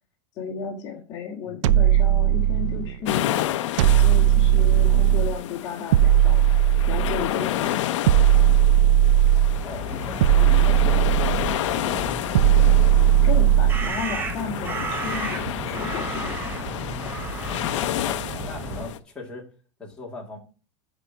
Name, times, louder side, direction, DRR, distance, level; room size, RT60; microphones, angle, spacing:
voice 1, 0.4-3.4 4.0-6.4 6.8-7.8 13.2-16.4, left 6 dB, 30° left, -5 dB, 1.9 m, -33 dB
sound 1, 1.6-3.0 3.8-5.4 5.9-7.3 8.1-9.7 10.2-11.6 12.3-14.0, right 11 dB, 80° right, 0.5 m, -18 dB
sound 2, 3.1-19.0, left 13 dB, 85° left, 0.7 m, -30 dB
sound 3, 9.5-18.9, right 3 dB, 15° right, 0.7 m, -33 dB
voice 2, 9.6-12.2 17.3-19.5 19.8-20.4, left 2 dB, 5° left, -3 dB, 2.0 m, -40 dB
9.8 x 4.3 x 5.8 m, 0.36 s
supercardioid pair, 175°, 15 cm